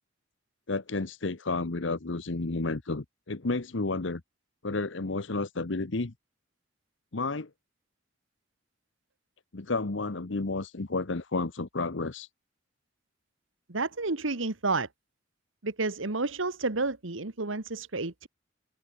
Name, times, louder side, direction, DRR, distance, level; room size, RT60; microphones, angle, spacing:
voice 1, 0.7-4.2 4.6-6.1 7.1-7.5 9.5-12.3, left 3 dB, 70° left, 1.1 m, -31 dB
voice 2, 13.7-14.9 15.6-18.3, right 3 dB, 90° right, 1.7 m, -30 dB
head